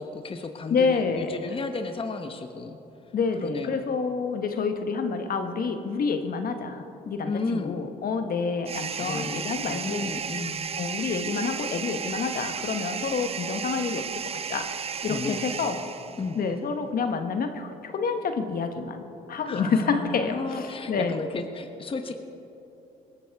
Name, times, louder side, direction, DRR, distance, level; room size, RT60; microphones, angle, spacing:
voice 1, 0.0-2.8 3.4-3.8 7.2-7.8 9.0-10.7 15.1-15.4 16.2-16.4 19.5-22.2, left 3 dB, 30° left, 6 dB, 1.0 m, -33 dB
voice 2, 0.7-1.4 3.1-10.1 10.8-15.8 16.3-21.2, left 5 dB, 55° left, 7 dB, 1.1 m, -28 dB
sound 1, 8.6-16.4, right 7 dB, 35° right, 0.5 m, -34 dB
20.5 x 13.0 x 3.5 m, 3.0 s
supercardioid pair, 65°, 18 cm